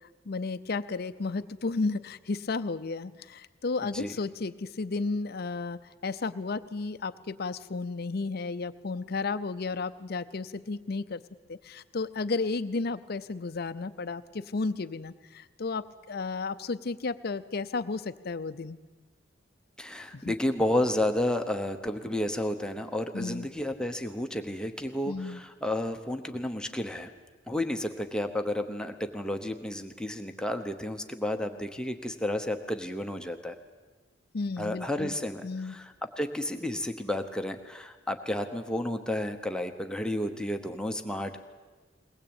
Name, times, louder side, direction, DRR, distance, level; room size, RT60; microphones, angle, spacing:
voice 1, 0.3-11.2 11.5-18.8 20.1-20.4 23.1-23.5 25.1-25.4 34.3-35.1 35.4-35.8, left 3 dB, 55° left, 12 dB, 0.6 m, -33 dB
voice 2, 19.8-27.1 27.5-33.6 34.6-41.4, left 1 dB, 5° left, 5 dB, 1.0 m, -31 dB
22.0 x 19.0 x 8.9 m, 1.3 s
head